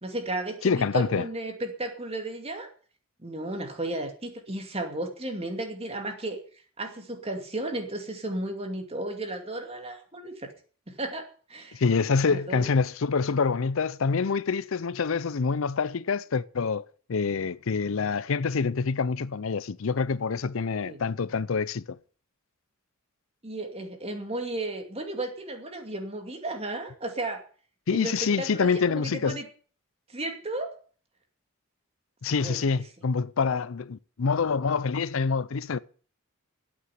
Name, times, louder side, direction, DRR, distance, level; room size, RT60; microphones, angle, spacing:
voice 1, 0.0-2.7 3.2-6.4 6.8-10.5 10.9-11.8 12.2-12.6 20.8-21.0 23.4-27.4 27.9-29.5 30.1-30.7 32.4-32.6, right 1 dB, 30° right, 2.5 m, -34 dB
voice 2, 0.6-1.3 11.7-22.0 27.9-29.4 32.2-35.8, left 5 dB, 65° left, 0.5 m, -26 dB
9.3 x 8.6 x 9.4 m
head